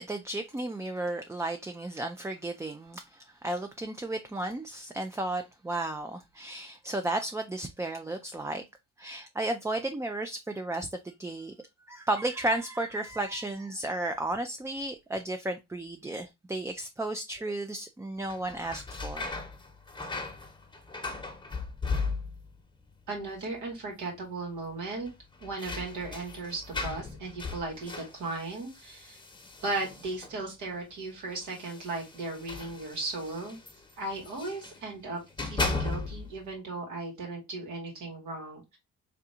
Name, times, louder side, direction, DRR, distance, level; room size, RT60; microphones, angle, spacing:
voice 1, 0.0-8.6 9.0-11.5 11.9-19.3, right 2 dB, 10° right, 0.4 m, -33 dB
sound 1, 18.2-22.6 22.9-23.5 23.8-23.9 25.0-30.4 31.3-34.8 35.2-36.4, left 3 dB, 15° left, 1.0 m, -37 dB
voice 2, 23.1-25.1 25.4-29.2 29.6-33.6 34.0-38.8, right 3 dB, 80° right, 2.3 m, -36 dB
3.7 x 3.5 x 2.7 m
cardioid pair, 90°, 30 cm